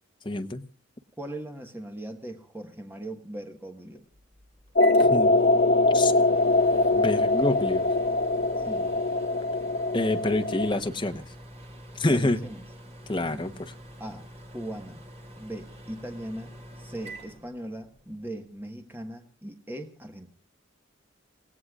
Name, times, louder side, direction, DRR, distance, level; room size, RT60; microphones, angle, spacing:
voice 1, 0.2-0.7 5.1-5.3 5.9-6.1 6.9-7.8 9.9-11.2 12.0-12.4 13.1-13.5, left 2 dB, 25° left, 6 dB, 1.0 m, -26 dB
voice 2, 1.2-4.1 8.6-9.0 12.1-12.7 13.3-13.6 14.0-14.3 14.5-15.0 15.3-20.3, right 1 dB, 10° right, 4 dB, 1.4 m, -39 dB
Microwave oven, 4.1-18.1, right 1 dB, 30° right, 2.6 m, -45 dB
sound 1, 4.8-10.7, left 2 dB, 45° left, 0.7 m, -22 dB
29.0 x 17.5 x 2.4 m, 0.37 s
head